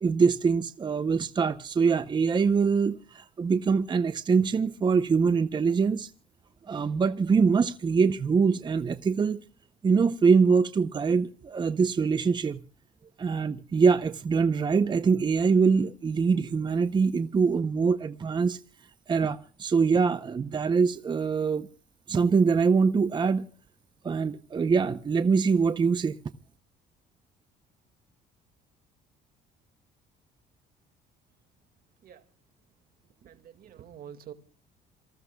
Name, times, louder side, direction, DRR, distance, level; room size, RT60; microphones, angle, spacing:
voice 1, 0.0-6.1 6.7-9.4 9.8-12.6 13.2-18.6 19.1-21.7 22.1-23.5 24.0-26.2, right 5 dB, 25° right, 0.7 m, -24 dB
voice 2, 33.2-34.3, right 9 dB, 60° right, 2.1 m, -46 dB
27.5 x 19.5 x 2.3 m
cardioid pair, 110°, 17 cm